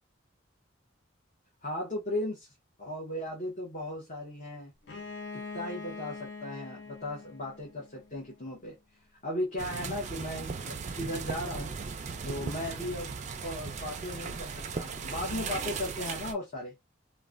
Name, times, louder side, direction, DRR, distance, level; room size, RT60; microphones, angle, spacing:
voice 1, 1.6-2.5 2.8-4.7 5.3-8.8 9.2-11.7 12.2-13.1 13.4-16.7, left 1 dB, 35° left, 0.9 m, -36 dB
Bowed string instrument, 4.8-8.5, left 4 dB, 60° left, 0.6 m, -44 dB
sound 1, 9.6-16.3, right 5 dB, 35° right, 0.3 m, -37 dB
3.1 x 2.1 x 2.4 m
head